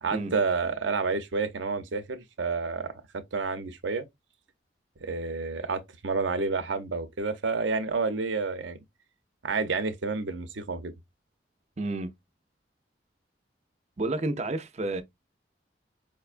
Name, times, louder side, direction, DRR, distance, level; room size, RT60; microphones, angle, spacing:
voice 1, 0.0-2.9 3.3-4.1 5.0-8.8 9.4-10.9, right 4 dB, 85° right, 0.7 m, -29 dB
voice 2, 11.8-12.1 14.0-15.0, right 2 dB, 35° right, 0.5 m, -30 dB
5.1 x 2.2 x 2.5 m
head